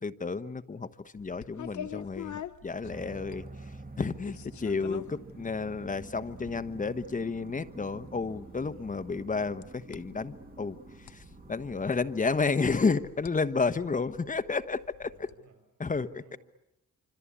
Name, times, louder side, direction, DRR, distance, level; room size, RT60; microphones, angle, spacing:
voice 1, 0.0-15.1 15.8-16.4, left 4 dB, 25° left, 12 dB, 1.2 m, -31 dB
sound 1, 1.2-15.3, left 9 dB, 80° left, 1.1 m, -47 dB
sound 2, 2.8-13.0, right 3 dB, 30° right, 2.0 m, -48 dB
voice 2, 8.7-9.4 15.0-15.7 16.2-16.4, right 6 dB, 85° right, 3 dB, 5.8 m, -61 dB
26.0 x 26.0 x 8.7 m, 0.89 s
cardioid pair, 100°, 29 cm